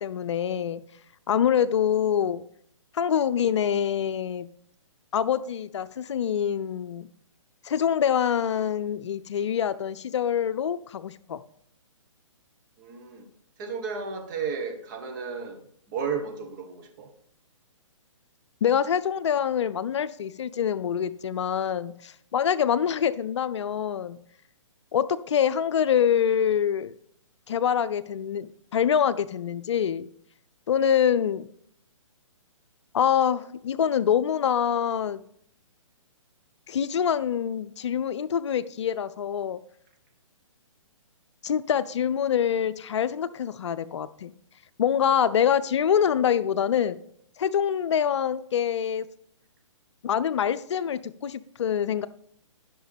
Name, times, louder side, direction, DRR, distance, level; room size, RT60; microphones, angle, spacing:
voice 1, 0.0-0.8 1.3-2.4 2.9-4.5 5.1-7.1 7.6-11.4 18.6-24.2 24.9-26.9 27.5-30.1 30.7-31.5 32.9-35.2 36.7-39.6 41.4-44.3 44.8-47.0 47.4-49.1 50.0-52.1, left 8 dB, 60° left, 14 dB, 0.5 m, -25 dB
voice 2, 12.8-13.3 13.6-15.6 15.9-17.1, right 5 dB, 35° right, 4 dB, 1.4 m, -33 dB
11.0 x 6.0 x 3.5 m, 0.68 s
hypercardioid pair, 140°, 17 cm